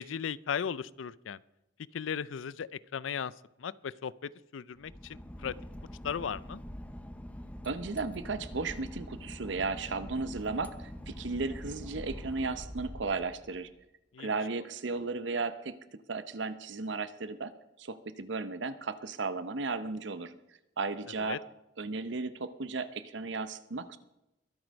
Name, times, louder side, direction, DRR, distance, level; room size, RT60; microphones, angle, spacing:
voice 1, 0.0-1.4 1.9-3.3 3.6-5.5 6.0-6.6 14.1-14.3 21.2-21.4, left 7 dB, 85° left, 20 dB, 0.4 m, -36 dB
Boat Water vehicle / Engine, 4.8-13.7, equal, 5° left, 0.7 m, -44 dB
voice 2, 7.6-13.7 14.2-15.7 16.1-17.5 17.8-20.3 20.8-21.4 21.8-24.0, right 3 dB, 70° right, 12 dB, 0.7 m, -35 dB
22.0 x 7.8 x 5.2 m, 0.89 s
head